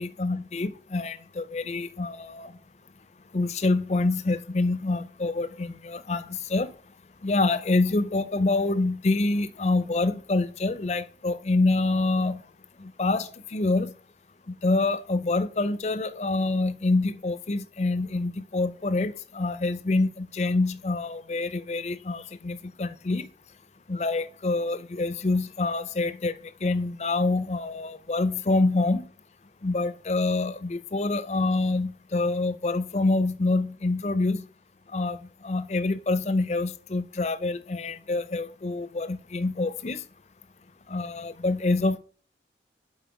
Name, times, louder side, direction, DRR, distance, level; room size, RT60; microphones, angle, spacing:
voice 1, 0.0-2.5 3.3-6.7 7.2-12.4 12.8-13.9 14.5-23.3 23.9-26.3 26.6-29.1 29.6-34.5 34.9-40.0 40.9-42.0, left 2 dB, 40° left, 0.5 m, -26 dB
7.8 x 4.3 x 4.7 m
head